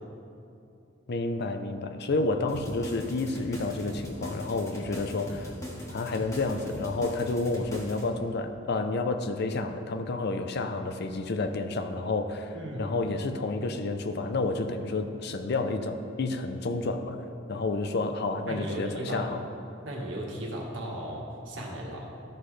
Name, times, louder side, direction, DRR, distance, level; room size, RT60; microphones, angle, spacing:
voice 1, 1.1-5.5 5.9-17.2 17.5-19.4, left 3 dB, 55° left, 8 dB, 0.5 m, -30 dB
sound 1, 2.5-8.0, equal, 15° left, 1.4 m, -40 dB
voice 2, 12.5-12.9 18.5-19.3 19.8-22.1, right 1 dB, 75° right, -2 dB, 1.5 m, -36 dB
13.0 x 5.9 x 3.3 m, 2.7 s
head